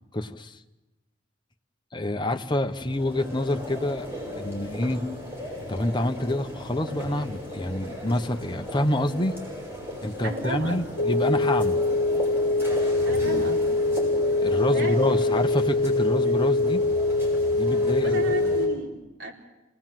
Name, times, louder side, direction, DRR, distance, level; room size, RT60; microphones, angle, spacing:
voice 1, 0.1-0.6 1.9-5.1 5.7-9.4 10.0-11.8 14.4-16.8 17.5-18.3, left 1 dB, 20° left, 5 dB, 0.9 m, -27 dB
sound 1, 2.6-18.7, equal, 10° right, 6.9 m, -36 dB
voice 2, 10.2-10.8 13.0-13.6 14.5-15.0 18.0-19.3, right 1 dB, 60° right, -1 dB, 4.3 m, -34 dB
sound 2, 11.0-18.8, left 2 dB, 70° left, 0.8 m, -23 dB
27.5 x 19.0 x 7.6 m, 1.1 s
head